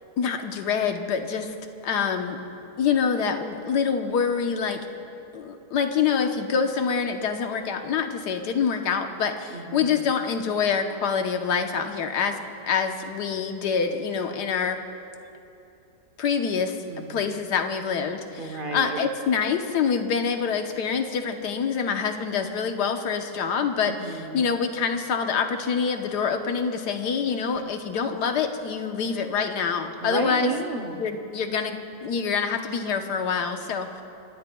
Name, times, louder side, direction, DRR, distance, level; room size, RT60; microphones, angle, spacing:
voice 1, 0.2-1.5 1.8-2.4 2.8-4.8 5.3-12.4 12.7-14.8 16.2-16.8 17.1-23.9 24.3-30.5 31.0-34.0, left 6 dB, 70° left, 5 dB, 1.5 m, -26 dB
voice 2, 9.5-10.1 16.9-17.3 18.4-19.0 23.8-24.6 30.0-31.0, right 3 dB, 40° right, 5 dB, 0.8 m, -33 dB
29.0 x 17.5 x 2.3 m, 2.8 s
omnidirectional pair, 1.9 m